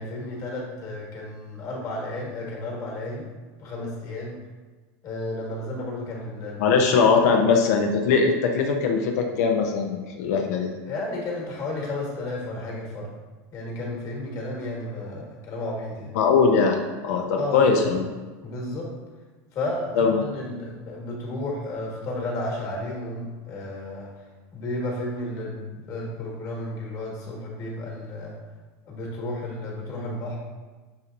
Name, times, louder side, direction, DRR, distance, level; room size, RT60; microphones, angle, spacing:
voice 1, 0.0-3.3 3.6-4.4 5.0-6.9 7.2-7.3 10.9-13.1 13.5-16.2 17.4-17.9 18.4-18.9 19.5-24.3 24.5-28.4 28.8-30.4, left 2 dB, 40° left, -2 dB, 1.4 m, -32 dB
voice 2, 6.6-10.7 16.1-16.8 17.0-18.0 20.0-20.2, left 5 dB, 75° left, 3 dB, 0.5 m, -21 dB
6.6 x 2.9 x 2.5 m, 1.3 s
supercardioid pair, 125°, 9 cm